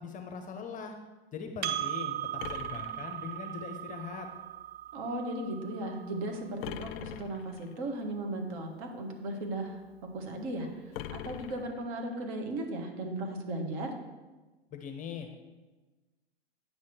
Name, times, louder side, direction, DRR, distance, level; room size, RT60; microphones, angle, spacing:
voice 1, 0.0-0.9 1.3-2.2 2.5-4.3 14.7-15.4, left 6 dB, 25° left, 5 dB, 0.8 m, -41 dB
Percussion, 1.6-6.4, right 12 dB, 30° right, 0.5 m, -38 dB
sound 1, 2.4-3.8 6.6-7.8 10.9-12.3, left 12 dB, 60° left, 0.5 m, -43 dB
voice 2, 4.9-9.8 10.1-14.0, right 1 dB, 50° right, 3 dB, 1.8 m, -36 dB
8.9 x 6.1 x 4.5 m, 1.2 s
hypercardioid pair, 100°, 32 cm